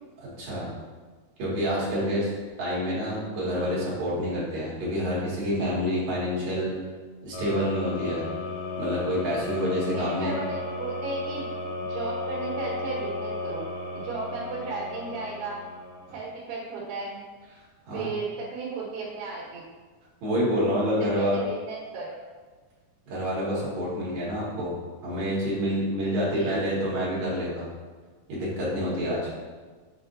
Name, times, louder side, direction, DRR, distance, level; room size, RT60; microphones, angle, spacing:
voice 1, 0.2-0.7 1.4-2.3 2.6-6.7 7.2-8.2 8.8-10.3 17.9-18.1 20.2-21.4 23.1-24.8 25.0-27.7 28.3-29.3, equal, 50° right, -7 dB, 2.9 m, -27 dB
sound 1, 7.3-16.3, left 2 dB, 85° left, 3.0 m, -34 dB
voice 2, 9.9-11.5 11.9-13.7 13.9-15.7 16.1-17.2 17.9-19.6 21.0-22.2 26.3-26.7, right 4 dB, 85° right, -5 dB, 3.1 m, -35 dB
7.4 x 5.9 x 2.6 m, 1.4 s
omnidirectional pair, 4.6 m